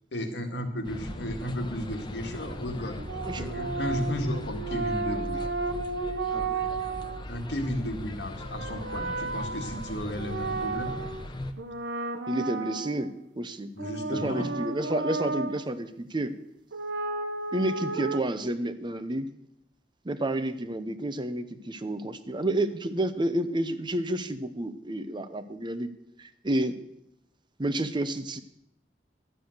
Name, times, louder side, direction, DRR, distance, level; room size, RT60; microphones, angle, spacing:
voice 1, 0.1-3.0 3.3-5.4 7.3-10.9 13.7-14.5, equal, 80° left, 4 dB, 1.8 m, -33 dB
sound 1, 0.8-11.5, left 1 dB, 25° left, 0.9 m, -39 dB
sound 2, 3.0-7.2 8.3-11.3 11.6-13.2 13.8-15.7 16.7-18.2, right 3 dB, 85° right, 0.9 m, -33 dB
voice 2, 3.2-3.6 6.3-6.7 12.3-13.7 14.1-16.3 17.5-19.3 20.0-26.8 27.6-28.4, right 1 dB, 25° right, 11 dB, 0.7 m, -30 dB
12.5 x 8.8 x 6.5 m, 0.81 s
head